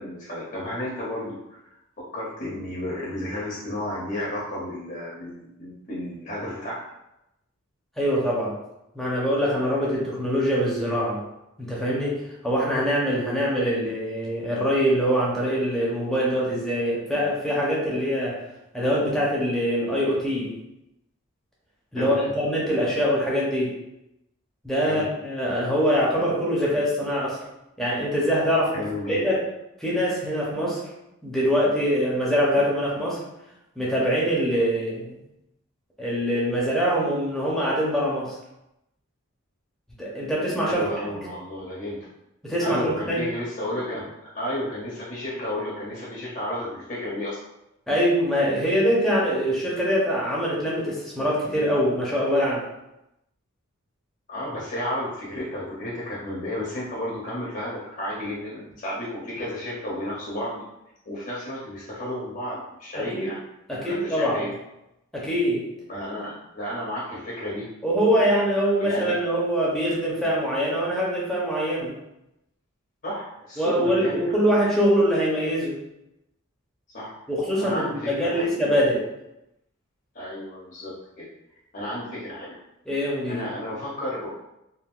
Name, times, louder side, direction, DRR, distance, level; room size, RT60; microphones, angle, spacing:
voice 1, 0.0-1.6 2.1-6.8 22.0-22.3 24.8-25.1 28.7-29.2 40.7-42.1 42.6-44.1 44.3-47.4 54.3-60.6 61.1-63.4 63.8-64.5 65.9-69.2 73.0-74.4 76.9-77.1 77.5-78.5 80.1-81.3 81.7-82.6 83.3-84.3, left 1 dB, 45° left, -5 dB, 0.7 m, -32 dB
voice 2, 8.0-8.5 8.9-11.2 11.6-18.4 18.7-20.6 21.9-23.7 24.6-27.4 27.8-28.8 29.1-29.4 29.8-30.8 31.2-33.2 33.8-35.2 36.0-38.4 40.0-41.2 42.4-43.3 47.9-52.6 63.1-63.3 63.7-64.5 65.1-65.7 67.8-71.9 73.6-75.8 77.3-79.0 82.9-83.5, equal, ahead, -6 dB, 0.7 m, -24 dB
3.5 x 2.5 x 2.4 m, 0.89 s
head